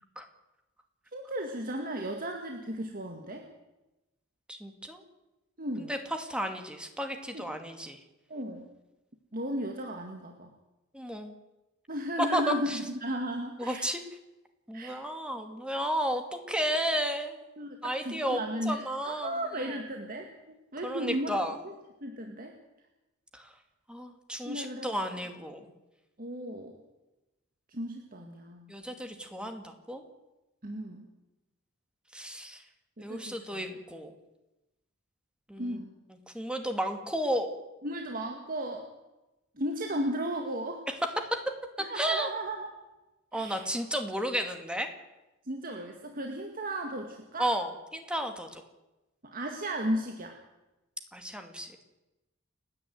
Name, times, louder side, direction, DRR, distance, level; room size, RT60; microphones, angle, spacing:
voice 1, 1.1-3.5 5.6-6.0 7.3-7.4 8.3-8.7 9.3-10.6 11.9-13.9 14.7-15.0 17.6-21.3 21.6-21.7 22.0-22.5 24.5-25.3 26.2-26.8 27.7-28.7 30.6-31.1 33.0-33.8 35.6-35.9 37.8-38.9 39.6-40.8 41.8-42.7 43.3-43.7 45.4-47.5 49.2-50.4, right 1 dB, 45° right, 3 dB, 2.0 m, -35 dB
voice 2, 4.5-5.0 5.8-8.0 10.9-11.3 12.3-12.8 13.6-14.0 14.7-17.4 17.8-19.3 20.8-21.6 23.3-23.5 23.9-25.7 28.7-30.0 32.1-32.6 33.0-34.1 35.5-35.8 36.3-37.5 41.3-41.4 41.9-42.3 43.3-44.9 47.4-48.6 51.1-51.7, equal, 5° right, 6 dB, 2.3 m, -33 dB
29.5 x 10.5 x 9.4 m, 1.0 s
head